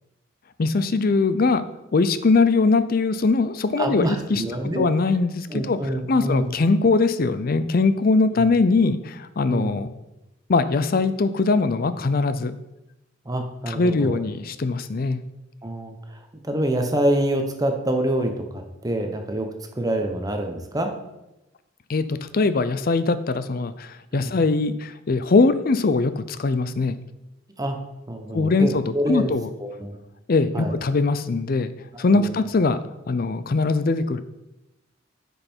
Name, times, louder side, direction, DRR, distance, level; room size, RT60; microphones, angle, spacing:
voice 1, 0.6-1.7 1.9-4.4 4.7-5.8 6.1-9.9 10.5-12.5 13.7-15.2 21.9-27.0 28.3-29.5 30.3-31.7 32.0-32.8 33.1-34.2, left 3 dB, 50° left, 13 dB, 0.5 m, -21 dB
voice 2, 3.8-4.9 5.5-6.5 8.3-8.4 9.5-9.8 13.2-14.2 15.6-19.5 19.7-20.9 24.1-24.3 27.6-27.8 28.1-29.3 29.6-30.0 30.5-30.7 31.9-32.3, right 1 dB, 20° right, 4 dB, 0.9 m, -26 dB
9.7 x 5.5 x 4.5 m, 0.95 s
head